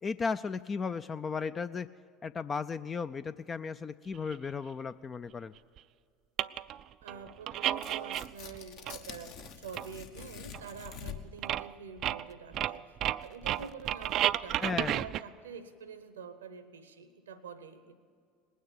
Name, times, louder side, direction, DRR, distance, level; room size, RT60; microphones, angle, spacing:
voice 1, 0.0-1.9 2.2-5.5 14.6-15.0, left 5 dB, 30° left, 12 dB, 0.3 m, -35 dB
sound 1, 4.3-4.4 5.8-5.9 6.4-6.8 7.1-8.6 8.9-9.5 9.8-9.9 10.2-10.3 10.5-11.1 11.4-11.7 12.0-15.2, right 12 dB, 50° right, 0.3 m, -32 dB
voice 2, 7.0-13.0 13.2-18.0, right 6 dB, 80° right, 12 dB, 0.8 m, -47 dB
Tearing, 7.7-11.5, left 7 dB, 60° left, 1.1 m, -46 dB
20.0 x 9.4 x 7.8 m, 2.3 s
figure-of-eight pair, 70°, 0 cm